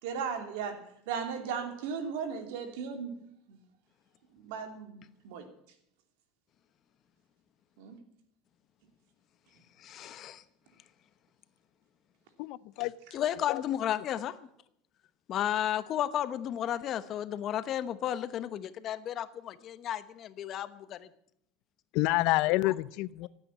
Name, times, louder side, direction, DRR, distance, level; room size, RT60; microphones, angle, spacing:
voice 1, 0.0-3.2 4.4-5.0 5.2-5.5 7.8-8.0, right 6 dB, 75° right, 7 dB, 2.9 m, -36 dB
voice 2, 9.8-10.4 13.1-14.4 15.3-21.1 22.6-22.7, left 11 dB, 40° left, 13 dB, 1.0 m, -33 dB
voice 3, 12.4-12.9 13.5-13.6 21.9-23.3, left 19 dB, 60° left, 19 dB, 0.6 m, -28 dB
16.0 x 9.2 x 8.6 m, 0.74 s
supercardioid pair, 135°, 0 cm